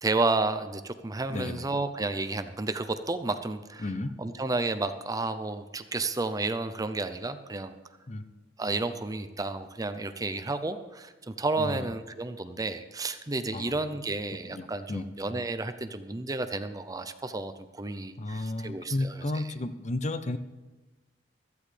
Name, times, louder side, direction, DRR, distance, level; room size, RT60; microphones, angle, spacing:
voice 1, 0.0-3.9 4.2-7.8 8.6-19.4, right 3 dB, 20° right, 10 dB, 0.6 m, -31 dB
voice 2, 1.3-1.6 3.8-4.1 8.1-8.2 11.6-11.8 13.5-13.7 14.5-15.1 18.2-20.4, left 2 dB, 40° left, 12 dB, 0.7 m, -33 dB
15.5 x 13.5 x 3.4 m, 1.2 s
head